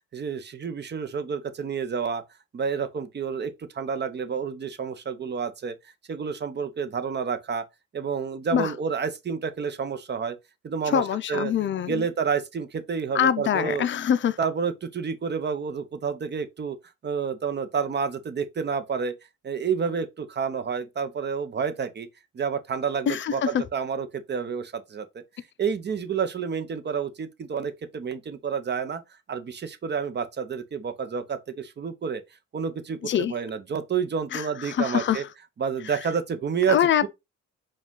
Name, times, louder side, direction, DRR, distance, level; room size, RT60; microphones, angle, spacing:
voice 1, 0.1-2.2 2.5-5.8 6.1-7.6 7.9-10.4 10.6-11.5 11.9-13.9 14.4-16.8 17.0-19.1 19.4-22.1 22.3-25.1 25.6-29.0 29.3-32.2 32.5-35.2 35.6-37.1, right 6 dB, 35° right, 0.7 m, -29 dB
voice 2, 10.9-12.0 13.1-14.4 23.1-23.5 33.0-33.3 34.3-35.2 36.7-37.1, left 9 dB, 40° left, 0.5 m, -24 dB
4.9 x 2.4 x 3.7 m
cardioid pair, 90°, 30 cm